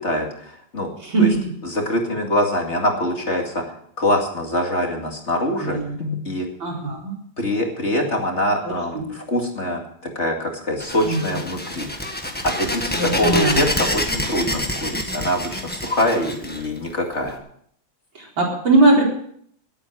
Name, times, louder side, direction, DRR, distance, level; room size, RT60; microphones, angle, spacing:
voice 1, 0.0-0.9 1.2-1.3 1.6-3.6 4.0-6.5 7.4-11.9 12.4-17.4, left 1 dB, 35° left, 1 dB, 2.5 m, -24 dB
voice 2, 1.0-1.4 5.6-5.9 6.6-7.1 8.6-9.0 11.0-11.4 13.0-13.6 18.1-19.1, right 3 dB, 75° right, -2 dB, 5.0 m, -20 dB
sound 1, 10.8-17.3, left 1 dB, 5° left, 1.3 m, -27 dB
18.5 x 8.8 x 6.3 m, 0.65 s
omnidirectional pair, 2.1 m